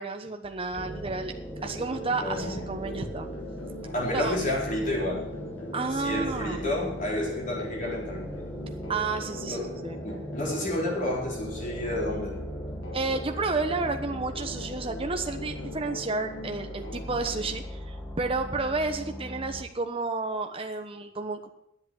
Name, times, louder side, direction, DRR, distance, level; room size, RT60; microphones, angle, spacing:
voice 1, 0.0-1.3 1.6-3.3 4.1-4.4 5.7-6.7 8.9-10.0 12.9-21.5, right 3 dB, 30° right, 5 dB, 1.0 m, -31 dB
sound 1, 0.7-19.6, equal, 10° left, 1.4 m, -39 dB
sound 2, 1.6-17.6, left 1 dB, 80° left, 1.6 m, -43 dB
voice 2, 2.2-2.6 3.9-5.3 5.9-8.2 9.5-9.7 10.0-12.3, left 1 dB, 45° left, -3 dB, 4.4 m, -30 dB
10.5 x 8.0 x 8.1 m, 0.78 s
head